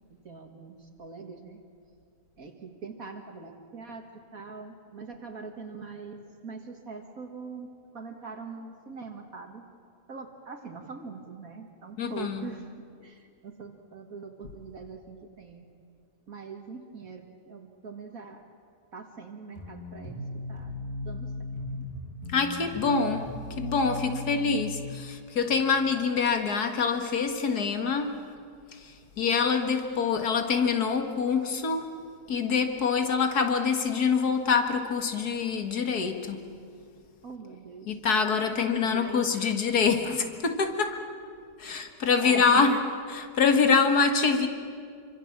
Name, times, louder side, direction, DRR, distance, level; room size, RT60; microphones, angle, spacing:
voice 1, 0.2-1.6 2.4-9.7 10.1-12.7 13.0-15.7 16.3-18.4 18.9-20.2 20.5-20.7 21.0-21.3 21.7-21.9 24.1-24.5 25.4-25.5 37.2-37.9 38.5-39.5 40.1-40.2 41.6-41.8 42.2-42.8, right 4 dB, 65° right, 3 dB, 2.1 m, -42 dB
voice 2, 12.0-12.5 22.3-28.2 28.7-31.9 32.3-36.5 37.9-41.0 41.6-42.7 43.1-44.5, left 5 dB, 80° left, 6 dB, 2.3 m, -25 dB
sound 1, 19.5-24.9, left 2 dB, 15° left, 7.0 m, -37 dB
26.5 x 25.0 x 7.4 m, 2.2 s
omnidirectional pair, 1.6 m